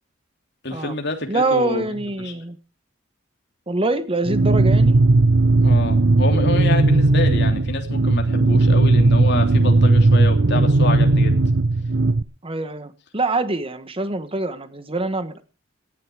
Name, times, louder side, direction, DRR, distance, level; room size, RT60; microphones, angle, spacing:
voice 1, 0.6-2.3 5.6-11.4, left 2 dB, 60° left, 4 dB, 3.1 m, -27 dB
voice 2, 1.3-2.6 3.7-5.0 12.4-15.4, right 2 dB, 30° right, 12 dB, 1.4 m, -24 dB
sound 1, 4.3-12.2, right 2 dB, 65° right, 0.8 m, -16 dB
18.0 x 11.0 x 4.8 m, 0.36 s
head